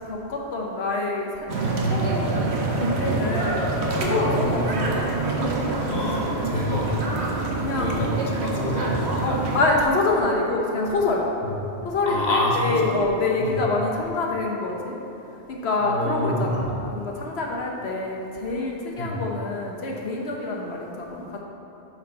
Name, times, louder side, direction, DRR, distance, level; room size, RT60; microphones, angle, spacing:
voice 1, 0.1-1.5 1.8-3.7 3.9-5.0 7.0-7.2 7.6-8.0 9.2-11.2 11.8-15.0 15.5-21.4, left 2 dB, 75° left, -1 dB, 1.2 m, -26 dB
sound 1, 1.5-9.6, right 2 dB, 85° right, 1.2 m, -25 dB
voice 2, 5.8-6.9 7.7-9.1 11.4-11.5 12.1-13.0 13.4-13.6 15.8-16.7 19.0-19.2, left 1 dB, 45° left, -2 dB, 1.0 m, -27 dB
7.1 x 5.1 x 5.4 m, 3.0 s
omnidirectional pair, 1.1 m